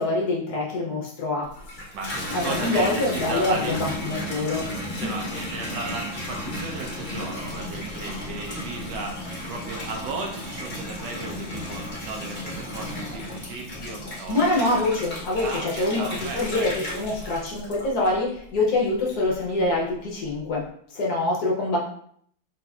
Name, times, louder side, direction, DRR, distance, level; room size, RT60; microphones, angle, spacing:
voice 1, 0.0-1.5 2.3-4.6 14.3-16.1 16.3-20.6 20.9-21.8, left 2 dB, 60° left, -3 dB, 1.1 m, -25 dB
Water tap faucet / Bathtub (filling or washing), 1.4-18.4 18.8-19.4, left 1 dB, 40° left, 0.7 m, -35 dB
voice 2, 1.9-3.7 4.9-14.7 15.4-17.0 17.2-17.3, right 3 dB, 75° right, 1 dB, 1.2 m, -35 dB
sound 1, 2.0-14.2, left 1 dB, 80° left, 0.4 m, -40 dB
4.1 x 3.0 x 2.4 m, 0.64 s
omnidirectional pair, 2.1 m